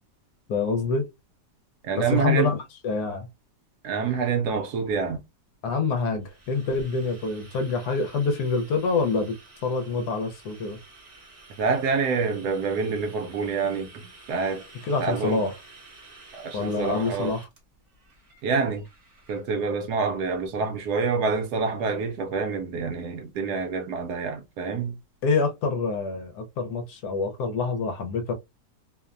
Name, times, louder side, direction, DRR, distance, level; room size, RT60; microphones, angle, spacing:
voice 1, 0.5-1.1 2.1-2.6 2.8-3.3 5.6-10.8 14.9-15.5 16.5-17.4 25.2-28.3, left 4 dB, 70° left, 1.1 m, -26 dB
voice 2, 1.8-2.6 3.8-5.2 11.6-14.6 15.0-15.4 16.3-17.3 18.4-18.8 19.3-25.0, right 5 dB, 75° right, 1.1 m, -27 dB
sound 1, 6.0-19.4, right 3 dB, 40° right, 0.6 m, -51 dB
2.9 x 2.1 x 2.4 m
omnidirectional pair, 1.9 m